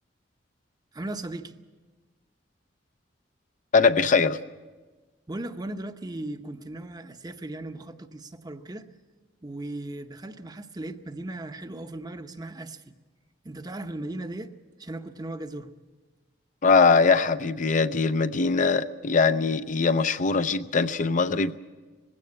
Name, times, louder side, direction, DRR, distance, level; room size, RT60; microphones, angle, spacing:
voice 1, 0.9-1.5 5.3-8.9 9.4-12.9 13.4-14.5 14.8-15.7, right 2 dB, 20° right, 8 dB, 0.8 m, -37 dB
voice 2, 3.7-4.4 16.6-21.6, left 4 dB, 45° left, 11 dB, 0.6 m, -21 dB
20.0 x 16.0 x 8.6 m, 1.3 s
head